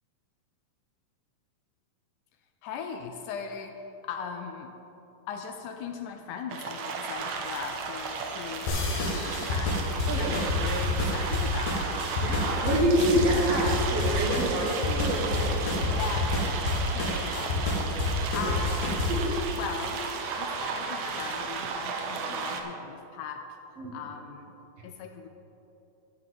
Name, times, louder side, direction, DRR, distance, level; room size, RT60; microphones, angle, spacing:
voice 1, 2.6-3.7 4.0-4.7 5.3-9.8 10.2-12.0 15.9-16.3 16.9-18.0 18.3-19.1 19.5-20.1 20.4-23.4 23.9-24.5 24.8-25.3, left 6 dB, 80° left, 5 dB, 1.9 m, -38 dB
sound 1, 6.5-22.6, right 5 dB, 80° right, 1.5 m, -34 dB
sound 2, 7.1-17.5, left 1 dB, 40° left, 1.7 m, -46 dB
sound 3, 8.7-19.3, left 2 dB, 65° left, 2.3 m, -29 dB
voice 2, 12.2-16.0 18.0-18.1 18.3-18.5 19.1-19.4 23.8-24.0, equal, 55° right, -3 dB, 2.0 m, -27 dB
12.0 x 4.9 x 7.5 m, 2.9 s
omnidirectional pair, 3.8 m